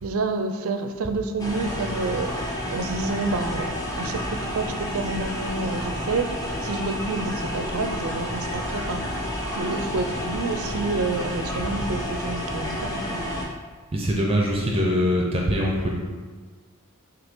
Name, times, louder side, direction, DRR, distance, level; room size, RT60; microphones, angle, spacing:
voice 1, 0.0-2.3 2.7-6.3 6.6-9.0 9.5-13.2, right 3 dB, 75° right, 8 dB, 0.5 m, -29 dB
sound 1, 1.4-13.5, equal, 15° left, 0.9 m, -30 dB
voice 2, 13.9-15.9, equal, 25° right, -1 dB, 0.6 m, -23 dB
6.3 x 2.8 x 5.3 m, 1.4 s
head